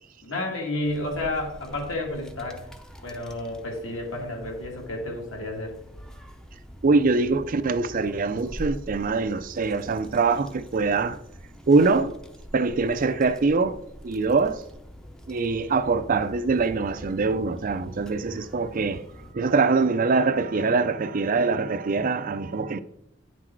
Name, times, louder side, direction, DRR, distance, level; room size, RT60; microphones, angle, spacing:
voice 1, 0.2-2.7 3.0-5.7, left 2 dB, 65° left, 2.3 m, -31 dB
sound 1, 0.8-19.3, equal, 5° left, 0.6 m, -44 dB
voice 2, 6.8-11.2 11.7-12.1 12.5-13.8 14.0-14.6 15.3-19.1 19.3-22.8, right 4 dB, 40° right, 0.4 m, -23 dB
9.9 x 6.0 x 4.5 m
head